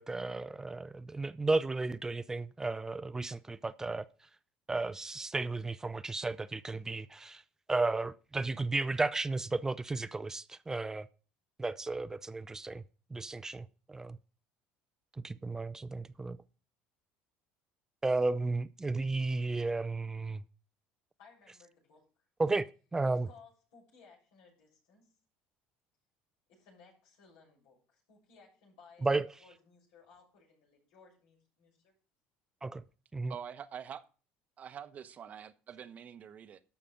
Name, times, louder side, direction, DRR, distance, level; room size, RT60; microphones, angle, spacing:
voice 1, 0.0-4.0 4.7-7.4 7.7-11.1 11.6-12.8 13.1-14.2 15.2-16.4 18.0-20.4 22.4-22.7 22.9-23.3 29.0-29.3 32.6-32.8 33.1-33.3, right 3 dB, 15° right, 0.5 m, -33 dB
voice 2, 21.2-22.0 23.0-25.1 26.5-31.9, left 5 dB, 85° left, 6.7 m, -60 dB
voice 3, 33.3-34.0 34.6-36.6, right 8 dB, 40° right, 0.9 m, -45 dB
12.5 x 5.9 x 5.1 m
cardioid pair, 115°, 4 cm